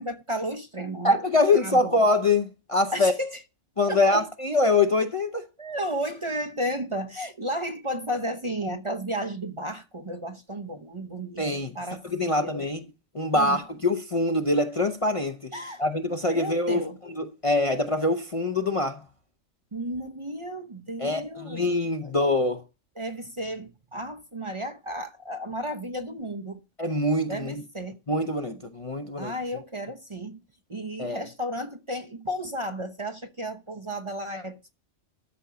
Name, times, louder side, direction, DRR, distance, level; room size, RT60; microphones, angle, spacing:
voice 1, 0.0-1.2 1.6-2.0 2.9-3.4 3.9-4.2 5.6-11.4 11.7-12.7 13.3-13.6 15.5-15.8 16.3-17.0 19.7-21.7 22.0-22.1 23.0-26.6 27.3-28.0 29.2-30.4 30.7-34.7, equal, 30° right, 0.8 m, -33 dB
voice 2, 1.0-3.1 3.8-5.5 11.4-11.7 12.0-12.9 13.1-15.5 15.8-19.0 21.0-22.6 26.8-27.6 28.1-29.3 31.0-31.2, left 2 dB, 30° left, 0.7 m, -24 dB
13.0 x 5.3 x 5.7 m
omnidirectional pair, 1.2 m